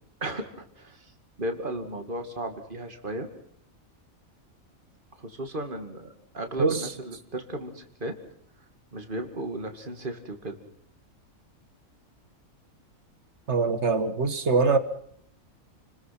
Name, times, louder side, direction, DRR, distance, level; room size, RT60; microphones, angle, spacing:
voice 1, 0.2-1.1 1.4-3.3 5.2-6.1 6.3-8.2 8.9-10.6, right 1 dB, 35° right, 2.7 m, -35 dB
voice 2, 13.5-14.8, right 4 dB, 55° right, 1.8 m, -23 dB
30.0 x 21.5 x 6.0 m
omnidirectional pair, 1.4 m